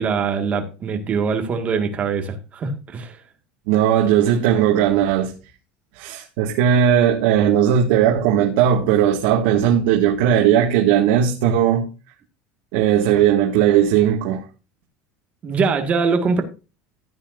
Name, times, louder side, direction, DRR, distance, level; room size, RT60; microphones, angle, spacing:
voice 1, 0.0-3.2 15.4-16.4, right 5 dB, 25° right, 1.8 m, -22 dB
voice 2, 3.7-5.3 5.9-11.9 12.7-14.5, right 9 dB, 70° right, 1.9 m, -17 dB
14.5 x 9.0 x 2.6 m
cardioid pair, 170°, 6 cm